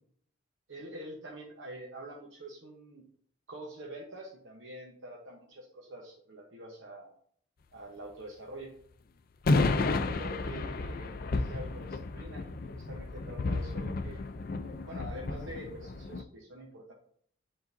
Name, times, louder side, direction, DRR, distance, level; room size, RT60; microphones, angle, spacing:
voice 1, 0.7-3.0 3.5-7.1 7.7-8.7 9.4-12.4 12.7-14.3 14.9-16.9, right 1 dB, 75° right, -2 dB, 1.0 m, -45 dB
sound 1, 9.5-16.2, left 3 dB, 45° left, 0.4 m, -32 dB
10.5 x 3.8 x 2.6 m, 0.63 s
head